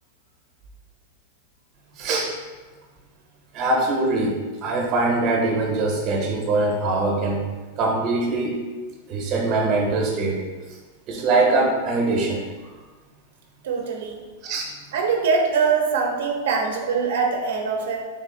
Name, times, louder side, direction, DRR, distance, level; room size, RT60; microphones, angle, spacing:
voice 1, 1.9-2.3 3.5-7.4 7.8-8.6 9.1-10.4 11.1-12.4 14.4-14.7, right 2 dB, 30° right, -1 dB, 0.7 m, -22 dB
voice 2, 13.6-14.2 14.9-18.0, right 5 dB, 80° right, 2 dB, 0.5 m, -23 dB
3.6 x 2.4 x 3.6 m, 1.3 s
supercardioid pair, 170°, 0 cm